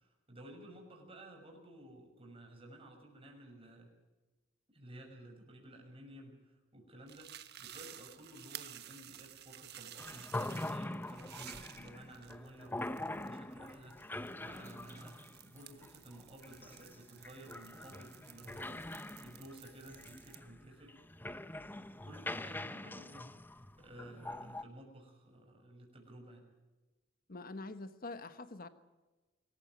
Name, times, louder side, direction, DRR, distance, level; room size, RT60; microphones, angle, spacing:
voice 1, 0.0-3.9 4.7-14.0 14.3-21.0 22.0-26.5, right 1 dB, 30° right, 1 dB, 6.3 m, -54 dB
sound 1, 7.1-20.4, right 11 dB, 55° right, 1.4 m, -54 dB
sound 2, 10.0-24.6, left 1 dB, 10° left, 0.6 m, -44 dB
voice 2, 27.3-28.7, left 2 dB, 45° left, 11 dB, 1.2 m, -45 dB
24.5 x 14.5 x 9.5 m, 1.2 s
head